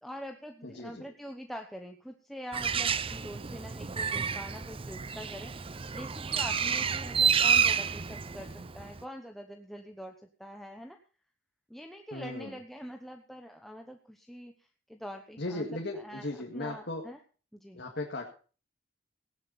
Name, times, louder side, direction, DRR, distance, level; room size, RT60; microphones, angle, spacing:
voice 1, 0.0-10.1 10.4-11.0 11.7-16.3 16.5-17.2 17.5-17.8, equal, ahead, 3 dB, 1.0 m, -44 dB
voice 2, 0.6-1.1 12.1-12.5 15.4-17.1 17.7-18.3, left 2 dB, 60° left, 1 dB, 2.0 m, -37 dB
Bird, 2.5-9.0, right 6 dB, 30° right, 0.6 m, -29 dB
17.0 x 11.0 x 4.1 m, 0.38 s
head